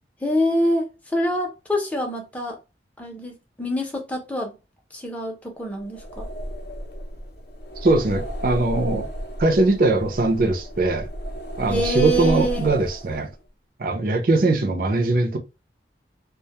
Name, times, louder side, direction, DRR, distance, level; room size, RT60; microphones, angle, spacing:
voice 1, 0.2-2.6 3.0-4.6 4.9-6.3 11.7-12.7, equal, 10° left, 0.5 m, -25 dB
sound 1, 5.8-13.4, equal, 55° left, 0.5 m, -33 dB
voice 2, 7.8-9.1 9.4-11.1 11.6-13.3 13.8-15.4, right 2 dB, 50° right, 0.5 m, -21 dB
2.1 x 2.0 x 2.8 m
head